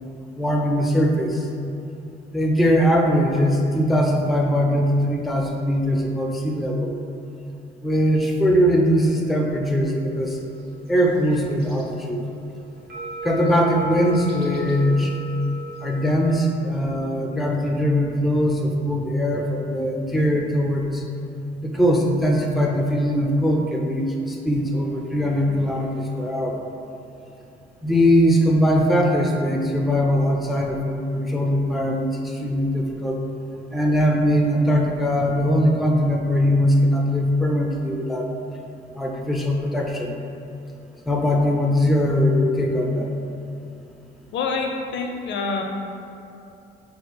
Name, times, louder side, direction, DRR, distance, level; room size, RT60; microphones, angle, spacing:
voice 1, 0.4-1.5 2.3-7.0 7.8-10.4 10.9-12.2 13.2-15.1 15.8-21.0 21.6-26.6 27.8-33.2 33.7-38.3 39.0-40.1 41.1-43.1, equal, ahead, 0 dB, 0.4 m, -21 dB
sound 1, 10.0-16.4, right 1 dB, 55° right, 0.8 m, -37 dB
voice 2, 44.3-45.6, left 4 dB, 65° left, 2 dB, 0.5 m, -26 dB
3.6 x 2.3 x 4.1 m, 2.7 s
cardioid pair, 90°, 20 cm